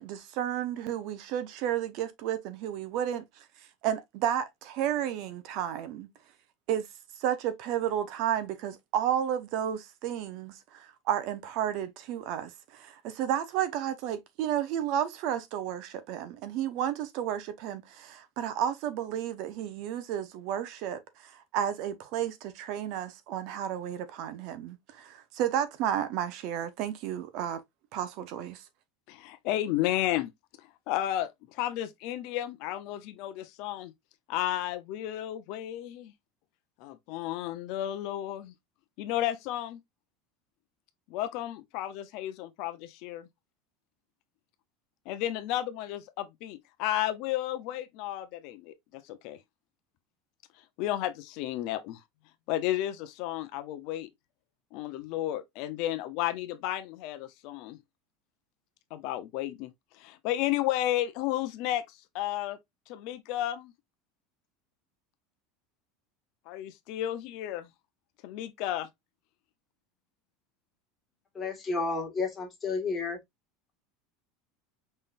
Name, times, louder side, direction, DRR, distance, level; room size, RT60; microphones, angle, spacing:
voice 1, 0.0-3.2 3.8-6.1 6.7-6.9 7.2-27.6 27.9-28.6, right 10 dB, 55° right, 0.9 m, -32 dB
voice 2, 29.1-30.3 30.9-33.9 34.3-36.1 36.8-38.5 39.0-39.8 41.1-43.3 45.1-49.4 50.8-52.0 52.5-54.1 54.7-57.8 58.9-59.7 60.0-61.8 62.1-62.6 62.9-63.7 66.5-67.7 68.2-68.9, left 13 dB, 55° left, 0.6 m, -32 dB
voice 3, 71.4-73.2, left 4 dB, 20° left, 1.9 m, -31 dB
5.3 x 3.7 x 2.5 m
supercardioid pair, 150°, 0 cm